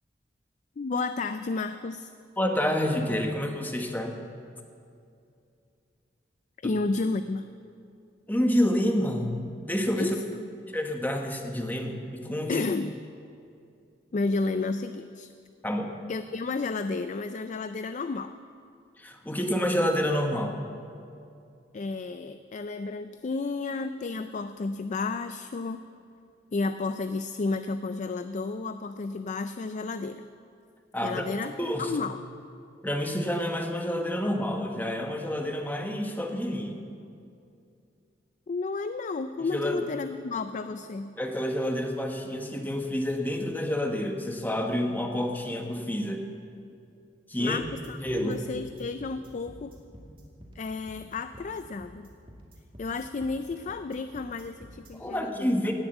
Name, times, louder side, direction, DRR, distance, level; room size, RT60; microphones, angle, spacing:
voice 1, 0.8-2.1 6.6-7.5 9.9-10.4 12.5-13.0 14.1-15.3 16.1-18.4 21.7-25.8 26.5-30.3 31.0-32.2 38.5-41.1 47.4-49.7 50.6-52.1 52.8-55.5, left 3 dB, 45° left, 10 dB, 0.4 m, -32 dB
voice 2, 2.4-4.2 6.6-6.7 8.3-10.2 10.7-12.6 15.6-15.9 19.0-20.6 30.9-31.2 31.6-31.9 32.8-36.8 39.5-39.8 41.2-46.2 47.3-47.6 48.0-48.4 55.0-55.7, equal, 10° left, 3 dB, 1.3 m, -28 dB
sound 1, 47.6-54.9, equal, 35° right, 2.4 m, -49 dB
18.0 x 7.2 x 8.1 m, 2.5 s
head